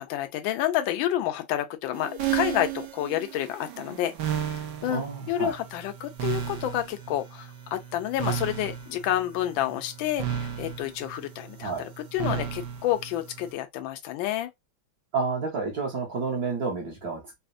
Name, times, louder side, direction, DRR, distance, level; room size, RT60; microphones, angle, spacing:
voice 1, 0.0-14.5, left 12 dB, 75° left, 1.3 m, -29 dB
sound 1, 1.9-13.5, right 10 dB, 70° right, 1.4 m, -34 dB
voice 2, 4.9-5.5 11.6-11.8 15.1-17.4, right 4 dB, 55° right, 1.3 m, -30 dB
4.1 x 2.1 x 2.4 m
omnidirectional pair, 2.3 m